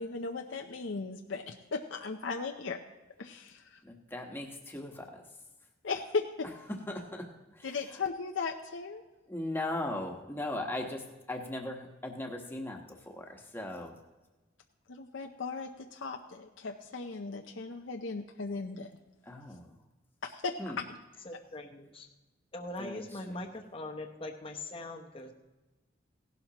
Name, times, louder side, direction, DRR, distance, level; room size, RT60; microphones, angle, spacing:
voice 1, 0.0-2.8 3.2-3.8 5.8-6.5 7.6-9.0 14.9-18.9 20.2-20.8, left 4 dB, 85° left, 3 dB, 0.7 m, -37 dB
voice 2, 3.8-5.2 6.7-7.7 9.3-13.9 19.3-19.7 20.6-20.8 22.8-23.4, left 1 dB, 10° left, 2 dB, 1.2 m, -38 dB
voice 3, 21.2-22.1 22.5-25.3, left 2 dB, 30° left, 2 dB, 0.9 m, -41 dB
17.0 x 11.5 x 3.0 m, 1.1 s
head